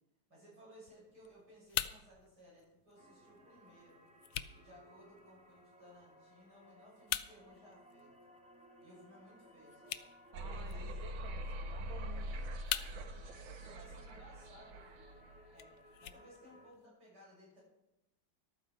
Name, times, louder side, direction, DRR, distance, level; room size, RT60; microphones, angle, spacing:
voice 1, 0.3-4.1 4.5-8.1 8.8-10.1 10.5-10.9 13.5-15.3 15.5-17.6, equal, 55° right, -5 dB, 7.4 m, -60 dB
sound 1, 0.8-16.9, left 12 dB, 80° left, 1.3 m, -47 dB
sound 2, 3.0-16.7, equal, 5° right, 1.9 m, -61 dB
sound 3, 10.3-15.5, equal, 75° right, 1.7 m, -43 dB
voice 2, 10.3-12.6 12.9-13.2, right 4 dB, 90° right, 1 dB, 2.5 m, -54 dB
14.0 x 12.0 x 4.6 m, 0.89 s
omnidirectional pair, 2.1 m